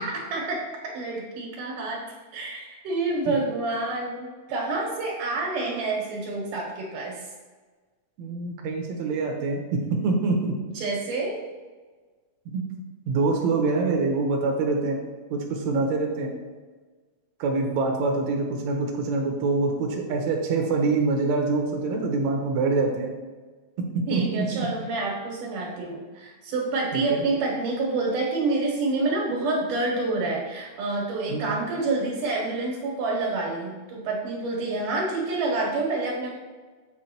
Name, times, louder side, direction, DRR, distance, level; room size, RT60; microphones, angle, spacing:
voice 1, 0.0-2.0 2.3-7.2 10.7-11.4 24.1-36.3, right 3 dB, 85° right, -2 dB, 3.0 m, -28 dB
voice 2, 8.2-9.6 9.9-10.5 12.5-12.6 13.1-15.0 15.3-16.3 17.4-23.1 23.8-24.7 26.9-27.2 31.3-31.5, right 3 dB, 70° right, 1 dB, 2.3 m, -25 dB
7.8 x 5.0 x 4.4 m, 1.4 s
omnidirectional pair, 3.6 m